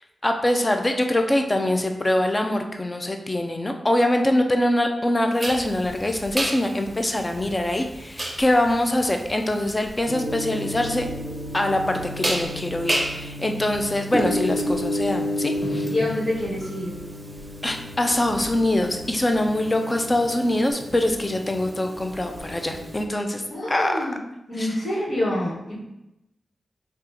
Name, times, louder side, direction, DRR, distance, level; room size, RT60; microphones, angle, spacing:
voice 1, 0.2-11.1 11.5-15.9 17.6-23.4 23.7-23.9, left 1 dB, 30° left, 4 dB, 0.5 m, -23 dB
sound 1, 5.4-23.0, equal, 30° right, 0.7 m, -31 dB
Gong, 10.1-20.7, equal, 80° left, 0.9 m, -38 dB
voice 2, 15.9-16.9 23.5-24.2 24.5-25.8, left 1 dB, 60° left, -6 dB, 1.4 m, -26 dB
2.8 x 2.4 x 3.7 m, 0.89 s
cardioid pair, 50°, 0 cm